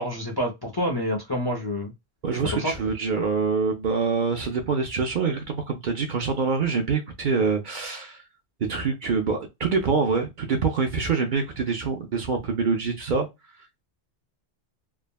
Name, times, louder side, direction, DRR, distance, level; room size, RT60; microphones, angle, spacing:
voice 1, 0.0-1.9 2.5-2.7, equal, 30° left, 0.5 m, -27 dB
voice 2, 2.2-8.2 8.7-13.3, right 5 dB, 55° right, 0.6 m, -25 dB
3.4 x 2.1 x 2.2 m
omnidirectional pair, 1.1 m